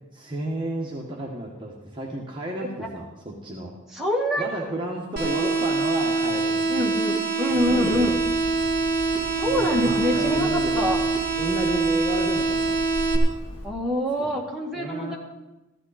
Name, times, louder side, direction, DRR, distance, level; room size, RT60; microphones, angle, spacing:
voice 1, 0.1-3.7 4.4-6.9 7.6-8.2 9.4-11.1 11.4-12.8 14.2-14.3 14.7-15.2, right 1 dB, 25° right, -2 dB, 1.5 m, -32 dB
voice 2, 3.9-4.7 6.7-8.2 9.3-11.0 13.6-15.2, equal, ahead, -4 dB, 2.1 m, -26 dB
sound 1, 5.2-13.2, right 3 dB, 50° right, 2.8 m, -24 dB
Hammer, 7.6-13.7, equal, 35° left, 5.8 m, -39 dB
15.0 x 13.5 x 4.2 m, 1.0 s
head